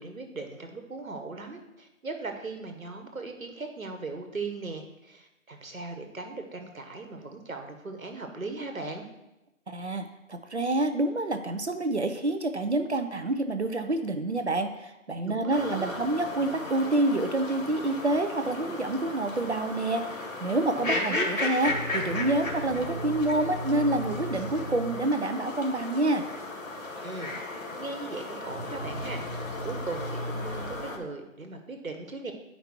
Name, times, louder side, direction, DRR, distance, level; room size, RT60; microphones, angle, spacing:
voice 1, 0.0-9.1 15.2-15.9 20.7-21.3 27.0-27.4 27.7-32.3, right 3 dB, 75° right, 5 dB, 1.6 m, -38 dB
voice 2, 9.7-26.3, right 2 dB, 55° right, 8 dB, 0.7 m, -28 dB
sound 1, 15.5-31.0, left 2 dB, 70° left, 1.9 m, -35 dB
sound 2, 21.7-25.1 28.4-30.8, equal, 30° right, 1.6 m, -37 dB
9.4 x 5.3 x 4.6 m, 0.96 s
figure-of-eight pair, 175°, 41 cm